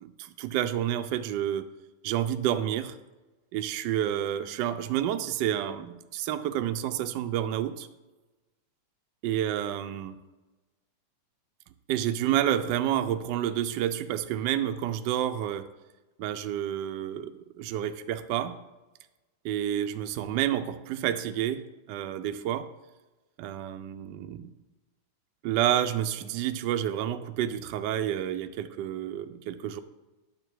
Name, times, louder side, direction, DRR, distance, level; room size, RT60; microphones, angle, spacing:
voice 1, 0.0-1.7 2.0-3.0 3.5-7.9 9.2-10.2 11.9-15.7 16.2-18.6 19.4-22.7 23.4-24.5 25.4-29.8, right 11 dB, 75° right, 9 dB, 1.1 m, -29 dB
9.7 x 7.2 x 4.7 m, 1.1 s
omnidirectional pair, 2.2 m